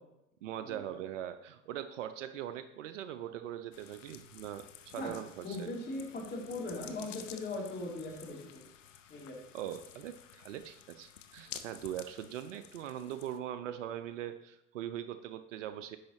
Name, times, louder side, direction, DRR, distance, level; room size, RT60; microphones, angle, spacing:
voice 1, 0.4-5.7 9.5-16.0, right 11 dB, 70° right, 10 dB, 0.5 m, -41 dB
sound 1, 3.7-13.4, left 9 dB, 75° left, 0.6 m, -52 dB
voice 2, 5.4-8.4 9.1-9.3, left 2 dB, 25° left, -1 dB, 2.1 m, -39 dB
10.0 x 4.8 x 3.0 m, 0.88 s
figure-of-eight pair, 70°, 38 cm